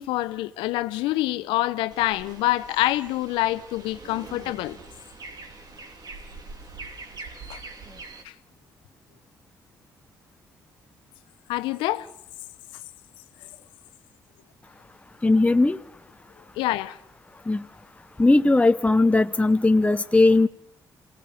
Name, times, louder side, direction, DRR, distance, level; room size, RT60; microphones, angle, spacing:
voice 1, 0.0-4.8 7.5-7.6 8.2-8.3 11.5-12.1 16.6-17.0, left 16 dB, 80° left, 0.8 m, -26 dB
sound 1, 1.9-8.2, right 3 dB, 50° right, 3.2 m, -43 dB
voice 2, 15.2-15.8 17.5-17.6 18.2-20.5, left 2 dB, 15° left, 0.8 m, -18 dB
28.0 x 18.0 x 6.9 m
hypercardioid pair, 45°, 9 cm